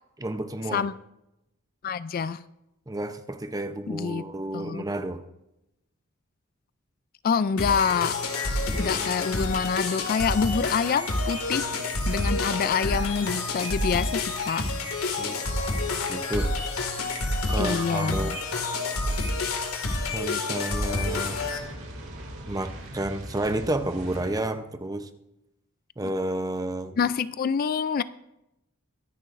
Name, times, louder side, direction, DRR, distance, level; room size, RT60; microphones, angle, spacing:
voice 1, 0.2-0.9 2.9-5.2 8.7-9.1 15.2-15.4 16.1-16.5 17.5-18.4 20.1-21.4 22.5-25.1 26.0-27.0, right 1 dB, 15° right, 8 dB, 0.7 m, -31 dB
voice 2, 1.8-2.4 3.9-4.2 4.5-4.8 7.2-8.2 8.8-11.7 12.1-15.0 17.6-18.4 27.0-28.0, left 6 dB, 40° left, 15 dB, 0.3 m, -26 dB
sound 1, 7.6-21.6, left 2 dB, 85° left, 2.1 m, -28 dB
Fire, 20.8-24.5, right 1 dB, 75° right, 3.8 m, -40 dB
23.0 x 10.5 x 2.6 m, 0.89 s
head